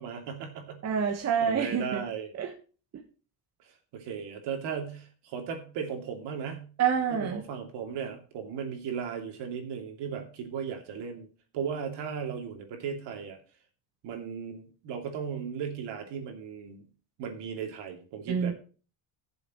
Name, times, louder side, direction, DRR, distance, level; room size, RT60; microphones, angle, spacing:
voice 1, 0.0-0.9 1.4-2.3 3.6-6.7 7.1-11.3 11.5-13.4 14.0-16.9 17.2-18.5, right 7 dB, 60° right, 4 dB, 2.8 m, -36 dB
voice 2, 0.8-2.0 2.4-2.5 6.8-7.4 18.3-18.5, right 7 dB, 35° right, 3 dB, 1.4 m, -27 dB
17.5 x 7.1 x 3.1 m, 0.37 s
cardioid pair, 155°, 47 cm